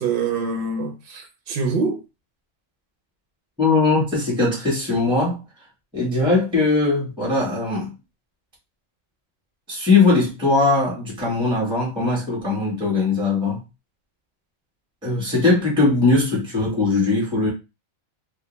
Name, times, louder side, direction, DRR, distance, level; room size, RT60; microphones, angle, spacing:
voice 1, 0.0-2.0, right 4 dB, 55° right, 0.7 m, -25 dB
voice 2, 3.6-5.4 5.9-7.9 9.7-13.6 15.0-17.5, left 3 dB, 5° right, 0.7 m, -20 dB
2.3 x 2.2 x 3.0 m
omnidirectional pair, 1.4 m